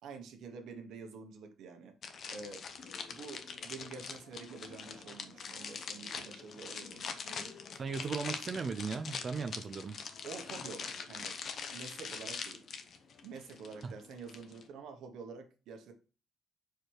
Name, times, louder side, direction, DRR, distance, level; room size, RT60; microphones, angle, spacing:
voice 1, 0.0-1.9 2.3-2.7 3.1-7.5 10.2-11.4 11.7-12.7 13.2-15.9, right 5 dB, 80° right, 1.2 m, -48 dB
sound 1, 2.0-14.7, left 5 dB, 55° left, 0.9 m, -43 dB
voice 2, 7.8-10.0, right 5 dB, 40° right, 0.5 m, -37 dB
4.8 x 4.7 x 4.7 m
cardioid pair, 115°, 0 cm